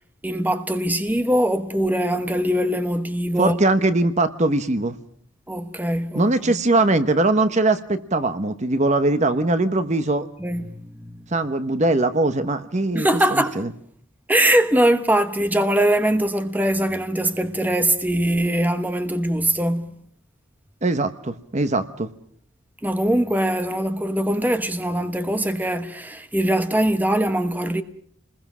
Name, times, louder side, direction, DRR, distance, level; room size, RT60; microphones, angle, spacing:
voice 1, 0.2-3.6 5.5-6.3 10.4-11.1 12.9-13.6 14.3-19.9 22.8-27.8, right 1 dB, 10° right, 1.1 m, -22 dB
voice 2, 3.4-5.0 6.1-10.3 11.3-13.7 20.8-22.1, right 2 dB, 35° right, 1.0 m, -21 dB
29.0 x 21.0 x 6.2 m
head